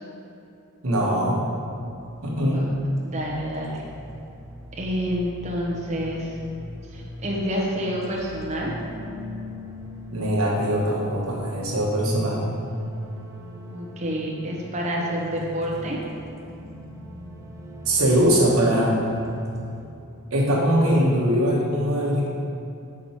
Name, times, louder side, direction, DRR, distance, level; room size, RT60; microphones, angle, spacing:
voice 1, 0.8-1.4 2.2-2.7 10.1-12.5 17.8-19.0 20.3-22.3, equal, 70° right, -3 dB, 1.2 m, -21 dB
sound 1, 1.4-19.9, equal, 15° right, 0.4 m, -40 dB
voice 2, 3.0-3.9 4.8-6.4 6.9-8.7 13.7-16.0, equal, 30° right, -3 dB, 0.9 m, -28 dB
6.3 x 4.4 x 4.3 m, 2.7 s
head